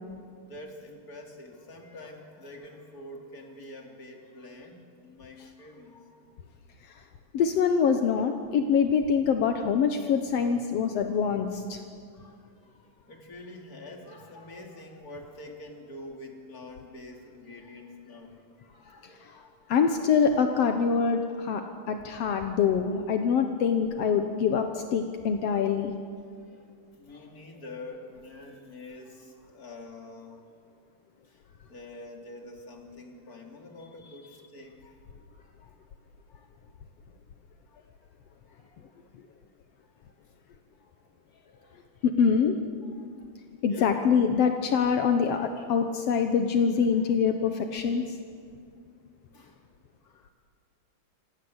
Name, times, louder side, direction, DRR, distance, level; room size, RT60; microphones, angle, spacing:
voice 1, 0.4-6.3 7.1-7.2 12.1-19.8 25.2-25.3 26.4-26.7 27.0-30.6 31.2-35.8 36.3-36.8 37.5-37.8 38.2-39.0 39.8-39.9 40.8-42.0 42.9-43.4 43.6-43.9 45.8-45.9 47.0-47.1 49.3-49.6 50.0-50.3, left 2 dB, 25° left, 2 dB, 3.3 m, -47 dB
voice 2, 7.3-11.8 19.2-19.4 19.7-21.6 21.9-25.9 42.0-42.6 43.6-48.2, left 6 dB, 70° left, 6 dB, 1.5 m, -25 dB
27.0 x 26.5 x 8.1 m, 2.2 s
omnidirectional pair, 4.3 m